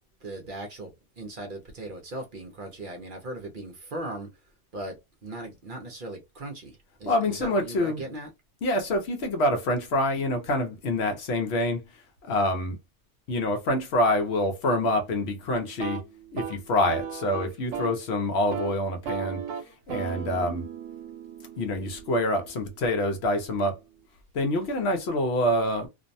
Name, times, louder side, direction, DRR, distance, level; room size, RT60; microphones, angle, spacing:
voice 1, 0.2-0.9 1.2-4.3 4.7-5.0 5.2-8.3, right 1 dB, 55° right, 0.7 m, -38 dB
voice 2, 7.0-8.1 8.6-11.8 12.3-12.8 13.3-16.0 16.3-19.4 19.9-20.7 21.6-23.8 24.3-25.9, left 1 dB, 65° left, 0.9 m, -26 dB
sound 1, 15.7-18.0 18.4-18.7 19.0-22.9, right 7 dB, 90° right, 0.9 m, -37 dB
2.5 x 2.1 x 2.5 m
omnidirectional pair, 1.2 m